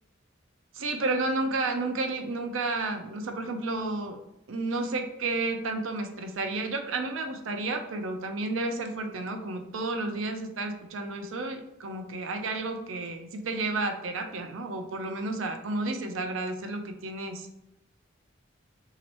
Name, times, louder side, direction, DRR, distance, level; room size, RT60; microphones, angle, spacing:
voice 1, 0.7-4.2 4.5-17.5, right 2 dB, 80° right, 5 dB, 0.5 m, -31 dB
3.0 x 2.9 x 2.9 m, 0.89 s
head